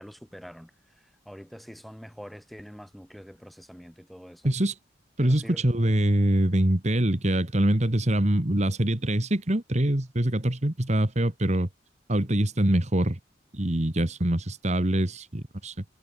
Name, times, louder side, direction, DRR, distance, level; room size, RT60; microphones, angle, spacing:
voice 1, 0.0-4.5 5.2-5.7, equal, ahead, 2.8 m, -45 dB
voice 2, 5.2-11.7 12.1-13.2 13.5-15.8, right 1 dB, 40° right, 1.9 m, -24 dB
head